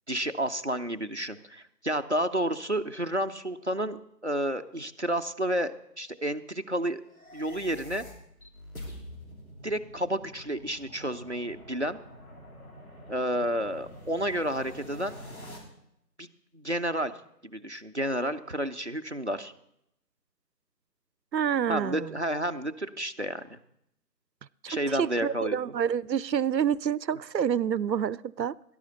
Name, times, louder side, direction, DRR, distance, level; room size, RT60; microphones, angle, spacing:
voice 1, 0.1-7.0 7.3-8.1 9.6-12.0 13.1-15.2 16.2-16.3 16.5-17.1 17.4-19.5 21.7-23.6 24.7-25.6, right 1 dB, 45° right, 0.6 m, -30 dB
sound 1, 7.1-15.6, equal, 55° left, 3.6 m, -46 dB
voice 2, 21.3-22.1 24.6-28.5, right 8 dB, 85° right, 0.6 m, -28 dB
18.0 x 11.5 x 4.0 m
figure-of-eight pair, 170°, 49 cm